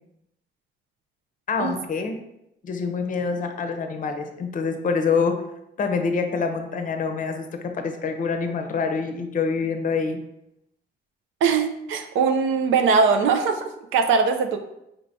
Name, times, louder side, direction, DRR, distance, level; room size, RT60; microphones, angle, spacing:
voice 1, 1.5-2.2 2.6-5.3 5.8-7.5 7.7-10.2, left 5 dB, 40° left, 6 dB, 0.6 m, -26 dB
voice 2, 11.4-14.6, right 5 dB, 80° right, 6 dB, 0.5 m, -21 dB
4.4 x 3.3 x 2.6 m, 0.83 s
cardioid pair, 90°, 20 cm